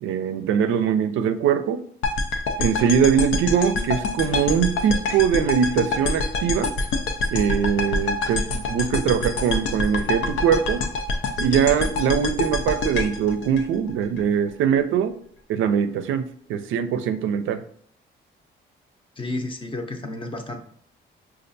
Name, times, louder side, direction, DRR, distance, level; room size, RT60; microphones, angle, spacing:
voice 1, 0.0-1.8 2.6-6.7 7.3-10.8 11.4-15.2 15.5-17.6, right 8 dB, 80° right, 10 dB, 0.4 m, -22 dB
sound 1, 2.0-14.2, left 3 dB, 80° left, 0.5 m, -26 dB
voice 2, 19.2-20.6, left 2 dB, 25° left, 4 dB, 0.6 m, -31 dB
5.2 x 2.4 x 2.6 m, 0.62 s
cardioid pair, 90°, 20 cm